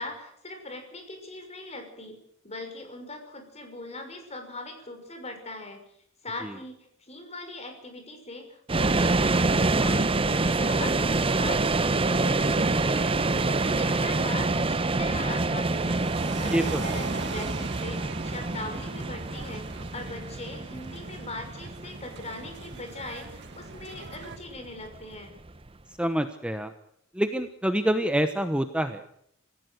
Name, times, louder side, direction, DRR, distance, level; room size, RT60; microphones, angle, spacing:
voice 1, 0.0-2.2 2.4-5.8 6.2-11.6 11.9-13.1 13.5-25.3, left 2 dB, 35° left, 5 dB, 6.2 m, -40 dB
sound 1, 8.7-25.7, right 3 dB, 25° right, 0.8 m, -27 dB
sound 2, 9.7-24.4, right 3 dB, 60° right, 1.3 m, -41 dB
voice 2, 16.5-16.8 26.0-26.7 27.1-29.1, right 1 dB, 5° right, 8 dB, 1.1 m, -26 dB
26.0 x 15.5 x 6.6 m, 0.70 s
head